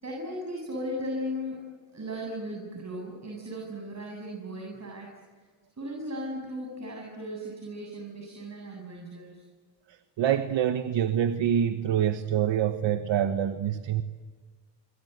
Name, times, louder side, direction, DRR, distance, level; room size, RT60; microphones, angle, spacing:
voice 1, 0.0-1.6 1.9-5.1 5.8-9.4, equal, 35° right, 0 dB, 7.8 m, -36 dB
voice 2, 9.9-14.0, right 9 dB, 75° right, 9 dB, 1.3 m, -26 dB
26.0 x 24.5 x 8.1 m, 1.5 s
cardioid pair, 75°, 44 cm